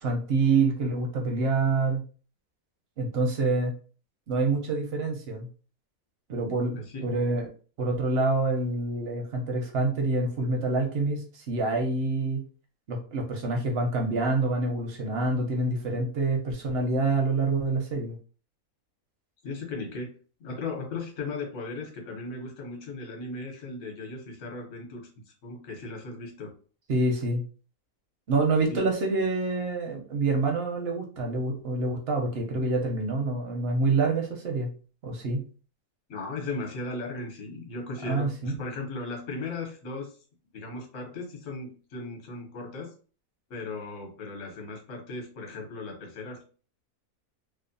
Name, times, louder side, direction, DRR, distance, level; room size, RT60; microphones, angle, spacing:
voice 1, 0.0-2.0 3.0-3.7 4.3-5.5 6.3-7.5 7.8-12.4 12.9-18.2 26.9-27.4 28.3-34.7 35.0-35.4 38.0-38.5, right 3 dB, 60° right, 2 dB, 0.6 m, -27 dB
voice 2, 6.7-7.1 19.4-20.1 20.4-25.1 25.4-26.5 28.7-28.8 36.1-40.1 40.5-42.9 43.5-46.4, left 3 dB, 60° left, 2 dB, 1.0 m, -37 dB
2.7 x 2.1 x 2.5 m, 0.38 s
omnidirectional pair, 1.6 m